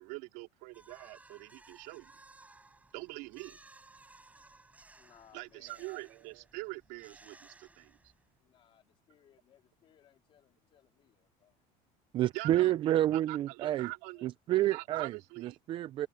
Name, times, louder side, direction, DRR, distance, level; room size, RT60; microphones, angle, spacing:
voice 1, 0.0-2.1 2.9-3.6 5.3-8.0 12.3-12.7 13.1-14.3 14.7-15.6, right 23 dB, 65° right, 3.9 m, -44 dB
sound 1, 0.7-8.4, right 3 dB, 10° right, 7.3 m, -59 dB
voice 2, 5.0-5.9 8.4-11.5 14.2-14.3, left 10 dB, 35° left, 3.2 m, -64 dB
voice 3, 12.1-13.9 14.2-16.1, right 13 dB, 30° right, 0.4 m, -29 dB
cardioid pair, 170°, 16 cm